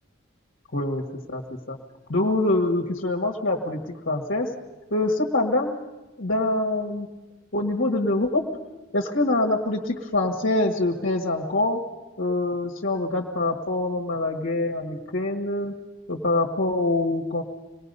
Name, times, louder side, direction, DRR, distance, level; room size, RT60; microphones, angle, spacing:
voice 1, 0.7-1.0 1.3-1.8 2.1-4.5 4.9-5.8 6.2-7.1 7.5-8.4 8.9-11.8 12.2-15.7 16.1-17.4, left 2 dB, 65° left, -1 dB, 1.6 m, -25 dB
26.0 x 19.5 x 5.5 m, 1.1 s
head